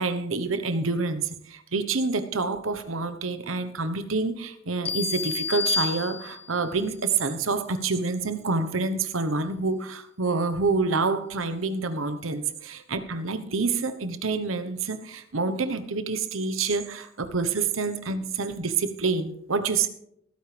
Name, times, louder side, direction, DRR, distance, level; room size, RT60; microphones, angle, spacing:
voice 1, 0.0-19.9, right 4 dB, 90° right, 11 dB, 1.1 m, -27 dB
sound 1, 4.8-6.7, left 5 dB, 30° left, 0.9 m, -29 dB
19.5 x 9.4 x 3.4 m, 0.75 s
head